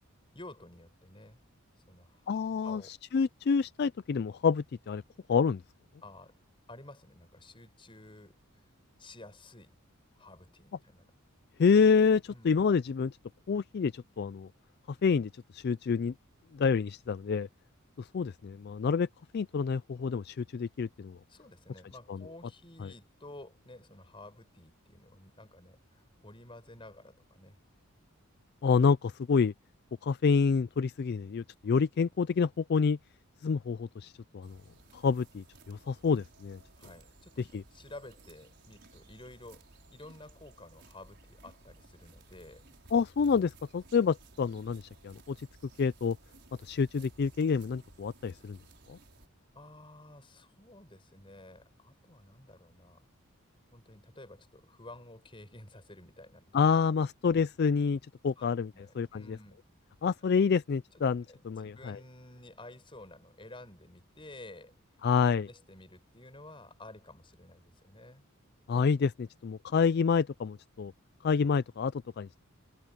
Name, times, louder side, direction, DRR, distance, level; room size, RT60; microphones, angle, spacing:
voice 1, 0.3-1.4 1.9-3.0 6.0-6.4 6.7-8.6 9.0-9.8 10.2-11.1 12.3-12.5 21.3-27.6 36.7-42.7 49.5-53.0 53.7-56.6 58.4-58.5 58.7-59.6 60.2-60.3 61.3-65.1 65.4-68.2, left 2 dB, 25° left, 6.9 m, -52 dB
voice 2, 2.3-5.0 5.3-5.6 11.6-13.2 13.5-14.5 15.0-16.1 16.5-17.5 18.0-19.1 19.3-21.2 22.1-22.2 28.6-29.5 30.0-33.0 33.4-34.6 34.9-36.6 37.5-37.6 42.9-45.5 45.8-46.2 46.6-48.6 48.9-49.0 56.5-59.2 60.0-62.0 65.0-65.5 68.7-70.9 71.2-72.4, left 5 dB, 50° left, 0.4 m, -28 dB
sound 1, 34.4-49.3, right 3 dB, 55° right, 5.8 m, -58 dB
head